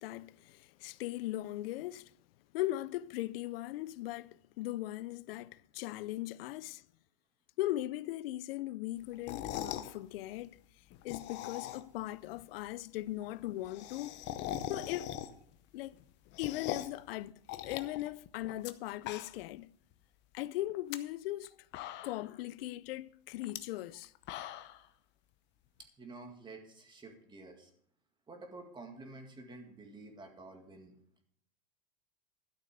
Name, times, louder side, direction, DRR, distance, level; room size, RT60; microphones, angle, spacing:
voice 1, 0.0-2.1 2.5-6.8 7.6-10.6 11.0-14.1 14.7-15.1 15.7-15.9 16.4-19.7 20.3-21.6 22.0-24.1, left 16 dB, 75° left, 0.5 m, -39 dB
sound 1, 9.1-9.9 10.9-12.0 12.4-12.5 12.7-12.8 13.0-13.1 13.3-15.5 15.9-17.0 17.5-18.7 19.0-19.6 19.9-20.0 20.7-21.0 21.4-21.5 21.7-22.4 23.4-23.6 24.0-24.8, left 12 dB, 40° left, 0.8 m, -41 dB
voice 2, 26.0-27.7 28.3-30.9, right 2 dB, 15° right, 2.0 m, -50 dB
12.5 x 6.6 x 6.5 m
supercardioid pair, 140°, 29 cm